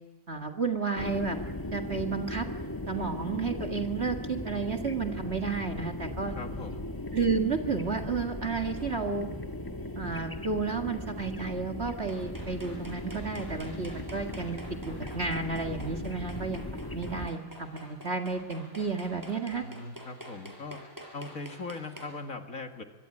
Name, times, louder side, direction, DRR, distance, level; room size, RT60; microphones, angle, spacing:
voice 1, 0.3-1.4 1.7-2.5 2.9-6.3 7.1-9.3 10.0-14.6 14.9-16.6 16.9-19.6, right 4 dB, 35° right, 4 dB, 1.9 m, -32 dB
sound 1, 1.0-17.3, left 1 dB, 15° left, 1.3 m, -38 dB
voice 2, 6.3-6.8 19.6-20.8 21.1-22.8, left 3 dB, 45° left, 5 dB, 2.1 m, -40 dB
sound 2, 8.8-9.0 12.1-22.1, equal, 10° right, 5.3 m, -47 dB
24.0 x 24.0 x 9.8 m, 1.3 s
omnidirectional pair, 2.1 m